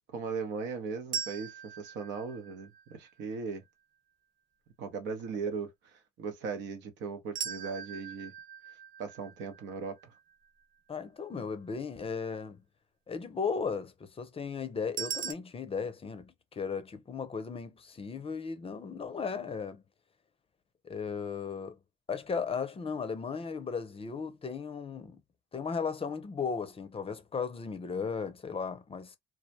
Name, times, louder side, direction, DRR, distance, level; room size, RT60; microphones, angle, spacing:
voice 1, 0.1-3.6 4.8-5.7 6.2-8.3 9.0-10.1, right 5 dB, 75° right, 0.8 m, -38 dB
sound 1, 1.1-3.2 7.4-10.5 15.0-15.3, right 7 dB, 45° right, 0.4 m, -40 dB
voice 2, 10.9-12.6 13.1-19.8 20.8-21.8 22.1-25.2 25.5-29.1, left 5 dB, 30° left, 0.5 m, -36 dB
2.3 x 2.1 x 2.6 m
supercardioid pair, 65°, 19 cm